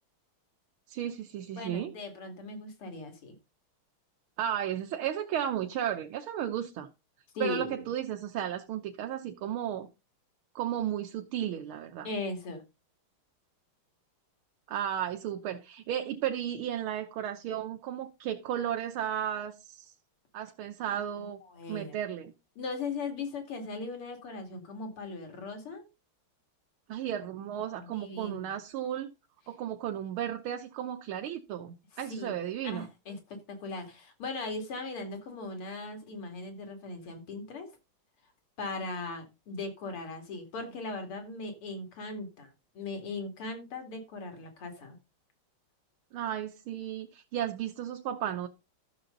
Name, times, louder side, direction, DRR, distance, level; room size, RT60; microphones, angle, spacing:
voice 1, 0.9-1.9 4.4-6.9 7.4-9.9 10.6-12.1 14.7-19.9 20.3-21.4 21.7-22.3 26.9-29.1 29.5-32.9 46.1-48.5, right 10 dB, 75° right, 1.8 m, -34 dB
voice 2, 1.6-3.3 7.3-7.8 12.0-12.6 21.5-21.9 22.6-25.8 27.8-28.5 32.1-32.4 32.6-37.7 38.6-45.0, left 3 dB, 85° left, 3.4 m, -38 dB
13.0 x 6.8 x 3.9 m
omnidirectional pair, 2.4 m